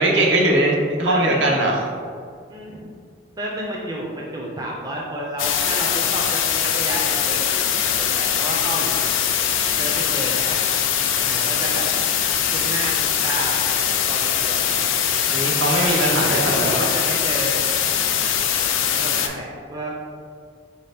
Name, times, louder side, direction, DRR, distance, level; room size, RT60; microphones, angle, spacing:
voice 1, 0.0-1.8 15.2-16.9, right 1 dB, 75° right, -1 dB, 0.7 m, -20 dB
voice 2, 1.0-1.5 2.5-2.9 3.4-7.7 8.0-9.0 9.8-10.6 11.2-11.9 12.5-13.8 14.1-14.6 15.7-17.6 18.8-19.9, right 1 dB, 20° right, -2 dB, 0.4 m, -31 dB
sound 1, 5.4-19.3, left 8 dB, 85° left, 0.4 m, -22 dB
4.0 x 2.8 x 3.3 m, 2.1 s
head